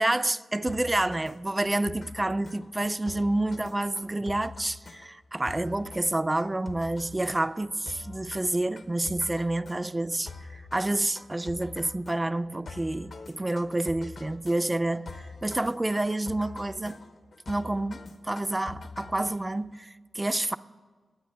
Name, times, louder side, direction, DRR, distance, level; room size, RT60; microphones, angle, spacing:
voice 1, 0.0-17.0 17.5-20.6, right 2 dB, 20° right, 0.3 m, -29 dB
sound 1, 0.7-19.8, left 3 dB, 60° left, 0.9 m, -45 dB
21.0 x 8.6 x 3.6 m
wide cardioid pair, 105°, 0 cm